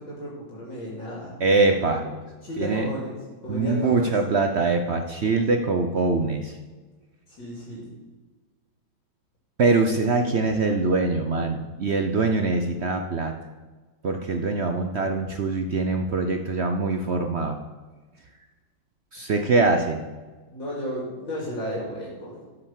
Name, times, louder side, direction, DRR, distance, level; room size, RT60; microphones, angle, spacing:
voice 1, 0.0-1.8 2.4-3.2 3.4-4.1 7.3-7.9 19.5-19.6 20.5-22.4, equal, 65° left, -4 dB, 3.5 m, -33 dB
voice 2, 1.4-2.1 2.6-2.9 3.5-6.5 9.6-13.4 14.0-17.6 19.1-20.0, right 3 dB, 70° right, 6 dB, 0.6 m, -23 dB
13.0 x 6.6 x 7.3 m, 1.3 s
omnidirectional pair, 2.2 m